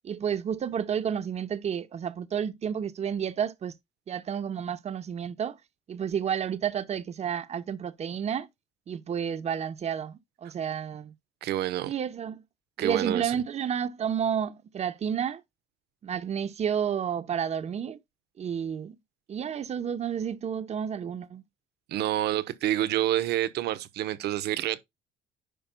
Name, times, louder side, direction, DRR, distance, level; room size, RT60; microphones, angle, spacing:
voice 1, 0.0-3.7 4.1-5.6 5.9-8.5 8.9-11.1 11.9-12.4 12.8-15.4 16.0-18.0 18.4-18.9 19.3-21.4, right 8 dB, 40° right, 0.9 m, -31 dB
voice 2, 11.4-11.9 12.8-13.4 21.9-24.8, right 13 dB, 75° right, 1.0 m, -28 dB
10.5 x 5.5 x 2.2 m
cardioid pair, 110°, 17 cm